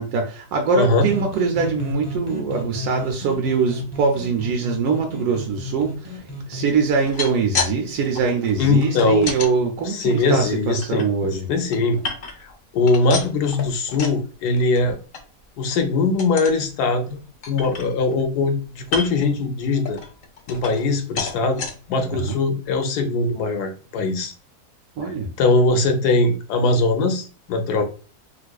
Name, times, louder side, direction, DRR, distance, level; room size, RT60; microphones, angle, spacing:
voice 1, 0.0-11.5 22.1-22.4 25.0-25.3, right 5 dB, 75° right, 2 dB, 1.0 m, -23 dB
voice 2, 0.7-1.1 8.6-9.3 9.8-12.0 12.4-15.0 15.6-17.2 17.5-20.0 20.5-21.6 21.9-24.3 25.4-27.8, left 3 dB, 85° left, 6 dB, 1.2 m, -21 dB
sound 1, 1.1-6.7, left 1 dB, 30° right, 0.4 m, -32 dB
sound 2, 6.9-7.7 8.0-9.5 10.0-11.0 11.5-12.5 12.8-14.2 14.6-14.8 15.1-15.2 15.6-15.8 16.2-16.6 17.1-17.2 17.4-18.2 18.8-19.3 19.8-20.9 21.2-21.7 22.3-22.4 22.7-22.8, left 4 dB, 65° left, 0.5 m, -30 dB
4.1 x 2.6 x 2.3 m, 0.36 s
omnidirectional pair, 1.7 m